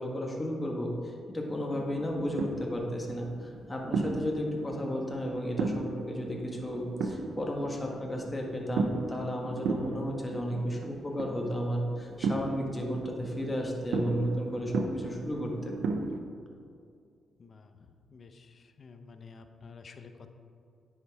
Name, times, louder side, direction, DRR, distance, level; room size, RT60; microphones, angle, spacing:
voice 1, 0.0-15.8, equal, 20° left, -1 dB, 1.6 m, -33 dB
sound 1, 1.7-16.2, right 4 dB, 85° right, 0.6 m, -36 dB
voice 2, 18.1-20.3, left 5 dB, 50° left, 7 dB, 0.7 m, -50 dB
9.5 x 5.8 x 4.7 m, 2.3 s
supercardioid pair, 60°, 0 cm